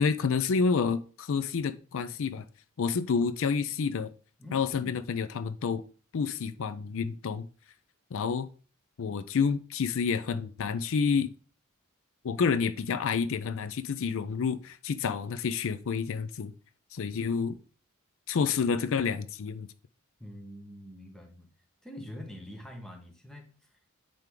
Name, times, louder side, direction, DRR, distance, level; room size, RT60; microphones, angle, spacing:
voice 1, 0.0-2.4 2.8-4.1 4.5-5.8 6.1-7.5 8.1-8.5 9.0-11.3 12.2-16.5 16.9-17.6 18.3-19.7, left 5 dB, 65° left, 0.4 m, -29 dB
voice 2, 4.4-5.0 20.2-21.5 21.8-23.6, equal, 5° left, 1.1 m, -45 dB
9.0 x 3.5 x 3.7 m
head